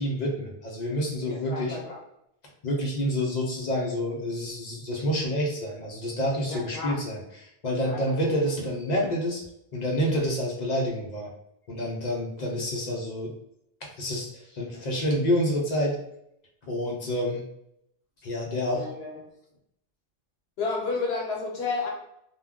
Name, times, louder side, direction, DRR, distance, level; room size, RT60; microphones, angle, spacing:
voice 1, 0.0-1.8 2.6-9.4 9.7-11.3 11.7-13.3 13.8-16.0 16.6-17.5 18.2-18.9, equal, 50° left, -1 dB, 0.6 m, -28 dB
voice 2, 1.3-2.0 6.5-7.0 7.8-8.2 18.7-19.1 20.6-21.9, left 4 dB, 70° left, -1 dB, 0.9 m, -31 dB
2.2 x 2.2 x 3.5 m, 0.78 s
omnidirectional pair, 1.1 m